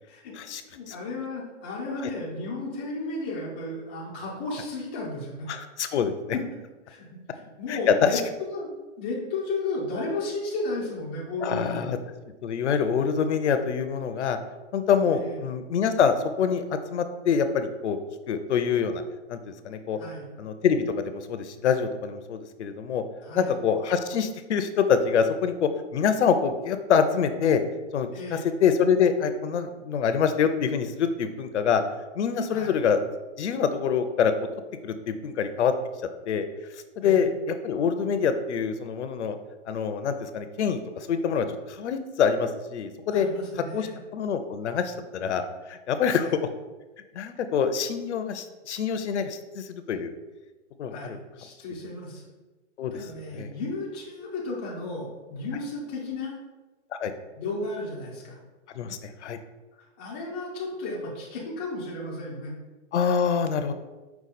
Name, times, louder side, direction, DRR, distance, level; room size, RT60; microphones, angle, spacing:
voice 1, 0.6-5.5 6.9-8.2 8.5-8.7 9.0-11.9 15.1-15.4 20.0-20.2 23.2-23.5 28.1-28.5 32.5-32.7 37.0-37.2 43.1-44.0 46.1-46.3 50.9-52.2 52.9-56.3 57.4-58.4 59.8-62.5, left 2 dB, 10° left, -7 dB, 0.3 m, -34 dB
voice 2, 5.5-6.1 7.7-8.2 11.4-12.0 12.4-14.4 14.7-18.0 18.3-19.0 19.3-20.0 20.4-23.0 23.3-27.6 27.9-31.8 32.2-33.0 33.4-34.5 34.8-35.7 36.3-36.4 36.7-39.4 39.7-43.3 43.7-43.9 44.1-46.3 47.1-50.1 50.8-51.2 52.8-53.0 53.3-53.5 56.9-57.1 58.8-59.4 62.9-63.7, left 6 dB, 70° left, 9 dB, 0.6 m, -25 dB
5.4 x 2.3 x 4.0 m, 1.2 s
hypercardioid pair, 145°, 36 cm